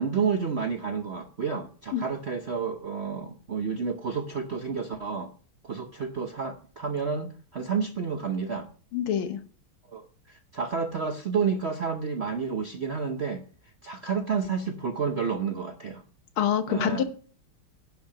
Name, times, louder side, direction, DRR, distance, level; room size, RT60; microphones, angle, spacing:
voice 1, 0.0-5.3 5.6-8.7 9.9-13.4 13.8-16.0 16.7-17.0, right 5 dB, 65° right, 5 dB, 0.6 m, -30 dB
voice 2, 8.9-9.4 16.4-17.0, left 9 dB, 75° left, 10 dB, 1.7 m, -26 dB
11.0 x 5.7 x 6.0 m, 0.41 s
omnidirectional pair, 2.4 m